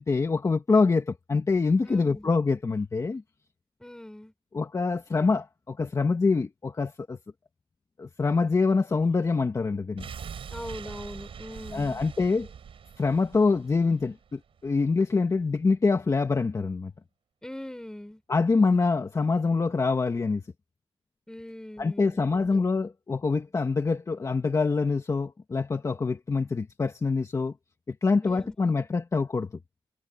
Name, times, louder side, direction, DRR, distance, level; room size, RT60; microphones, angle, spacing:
voice 1, 0.0-3.2 4.5-7.2 8.0-10.0 11.7-12.5 13.0-16.9 18.3-20.4 21.8-27.5 27.9-29.5, left 4 dB, 35° left, 2.1 m, -25 dB
voice 2, 1.9-2.3 3.8-4.3 10.5-12.0 17.4-18.2 21.3-22.6 28.2-28.8, left 1 dB, 5° left, 7.8 m, -41 dB
sound 1, 10.0-14.9 15.2-15.3, right 7 dB, 80° right, 7.9 m, -43 dB
wide cardioid pair, 135°, 9 cm